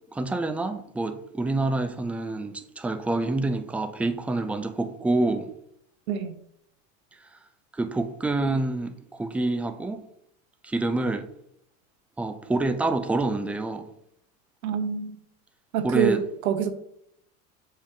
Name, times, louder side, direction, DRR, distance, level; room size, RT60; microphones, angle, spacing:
voice 1, 0.1-5.5 7.7-10.0 10.6-11.3 12.2-13.9 15.8-16.2, right 2 dB, 5° right, 0.4 m, -27 dB
voice 2, 14.6-15.2 15.7-16.7, right 8 dB, 80° right, 1.0 m, -26 dB
7.1 x 5.2 x 2.7 m
hypercardioid pair, 105°, 42 cm